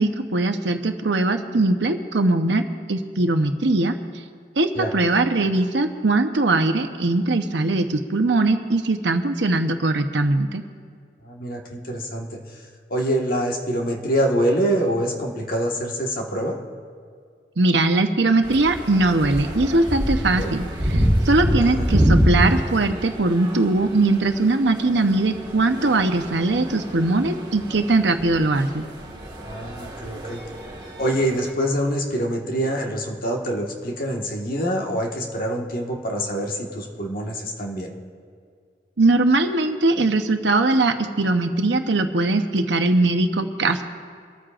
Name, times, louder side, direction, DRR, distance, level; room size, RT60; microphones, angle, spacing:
voice 1, 0.0-2.6 2.9-3.9 4.6-10.6 17.6-28.8 39.0-43.8, right 2 dB, 75° right, 6 dB, 0.9 m, -20 dB
voice 2, 11.2-12.4 12.9-16.6 20.4-20.5 21.6-21.8 29.4-30.4 31.0-37.9, equal, 55° left, 0 dB, 1.6 m, -25 dB
sound 1, 18.4-31.5, equal, 25° right, 1.8 m, -26 dB
24.5 x 13.5 x 2.5 m, 2.1 s
head